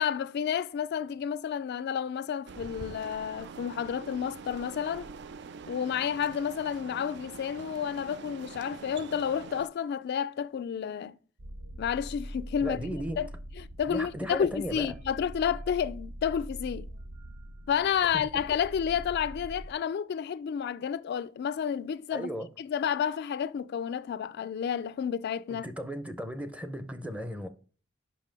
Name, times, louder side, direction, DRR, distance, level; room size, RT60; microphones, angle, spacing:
voice 1, 0.0-5.1 5.7-11.2 11.8-13.3 13.6-16.9 17.7-22.3 22.6-25.7, left 8 dB, 55° left, 0.3 m, -31 dB
sound 1, 2.5-9.7, right 5 dB, 60° right, 0.4 m, -45 dB
sound 2, 11.4-19.7, equal, 80° right, 0.8 m, -43 dB
voice 2, 12.6-13.2 13.9-14.9 18.1-18.2 22.1-22.5 25.5-27.5, equal, 5° right, 0.6 m, -35 dB
5.6 x 5.4 x 5.2 m
head